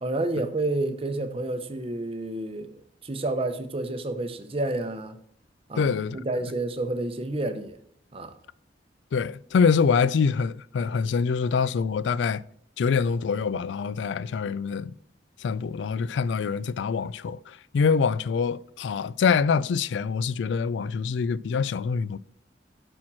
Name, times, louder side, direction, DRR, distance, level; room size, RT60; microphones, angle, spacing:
voice 1, 0.0-5.2 5.7-7.8 8.1-8.3, right 2 dB, 30° right, 0.8 m, -30 dB
voice 2, 5.8-6.2 9.1-12.4 12.8-14.9 15.4-22.2, left 5 dB, 70° left, 0.3 m, -25 dB
10.5 x 4.4 x 6.1 m
head